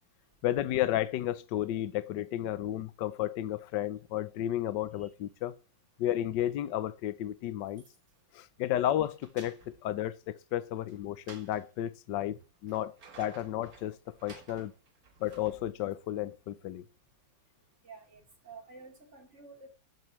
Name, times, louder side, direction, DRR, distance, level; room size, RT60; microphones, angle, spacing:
voice 1, 0.4-5.5 6.0-7.8 8.3-12.4 12.6-14.0 14.2-14.7 15.2-16.8, left 12 dB, 70° left, 1.3 m, -32 dB
sound 1, 7.6-8.2 8.7-9.9 10.8-11.6 12.4-16.1, right 4 dB, 50° right, 2.0 m, -55 dB
voice 2, 17.8-19.7, right 4 dB, 35° right, 4.2 m, -50 dB
14.0 x 12.5 x 3.2 m
omnidirectional pair, 2.1 m